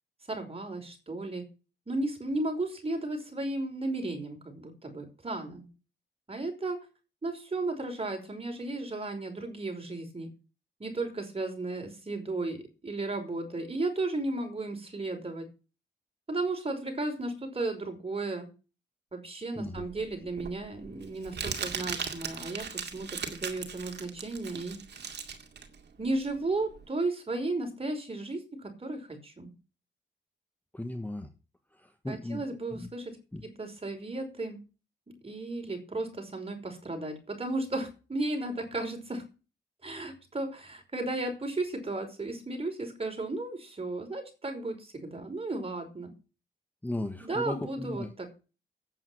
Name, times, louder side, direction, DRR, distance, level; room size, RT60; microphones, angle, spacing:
voice 1, 0.3-1.4 1.9-5.7 6.3-6.8 7.2-10.3 10.8-15.5 16.3-18.5 19.1-24.8 26.0-29.5 32.1-33.2 33.6-34.6 35.1-39.2 39.8-46.1 47.2-48.4, right 2 dB, 30° right, 3 dB, 5.4 m, -34 dB
voice 2, 19.5-19.9 30.7-31.3 31.7-32.9 33.3-33.4 46.8-48.1, left 1 dB, 10° left, 7 dB, 1.3 m, -36 dB
Crumpling crinkling, 19.8-26.8, right 6 dB, 65° right, 2.2 m, -38 dB
9.2 x 7.7 x 9.2 m, 0.33 s
cardioid pair, 65°, 19 cm